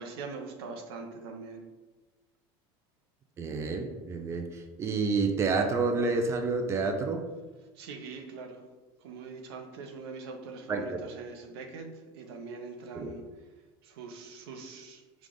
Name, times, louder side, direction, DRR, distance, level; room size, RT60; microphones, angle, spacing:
voice 1, 0.0-1.7 7.7-8.7 9.0-13.2 13.8-15.3, right 4 dB, 90° right, 4 dB, 0.7 m, -42 dB
voice 2, 3.4-7.3 10.7-10.8 12.9-13.1, right 4 dB, 20° right, 5 dB, 0.4 m, -29 dB
4.9 x 2.4 x 3.7 m, 1.3 s
supercardioid pair, 130°, 13 cm